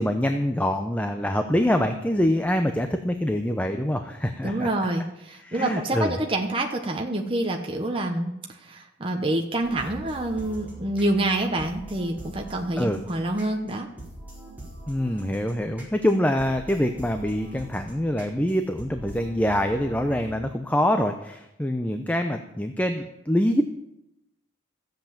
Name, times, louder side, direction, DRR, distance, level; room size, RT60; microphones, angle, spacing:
voice 1, 0.0-4.7 5.4-6.2 12.8-13.0 14.9-23.6, left 1 dB, 10° left, 6 dB, 0.6 m, -25 dB
voice 2, 4.4-8.3 8.6-13.9, right 1 dB, 30° right, 2 dB, 1.0 m, -27 dB
sound 1, 9.6-20.4, right 1 dB, 10° right, 4.7 m, -43 dB
14.5 x 7.9 x 7.3 m, 0.85 s
head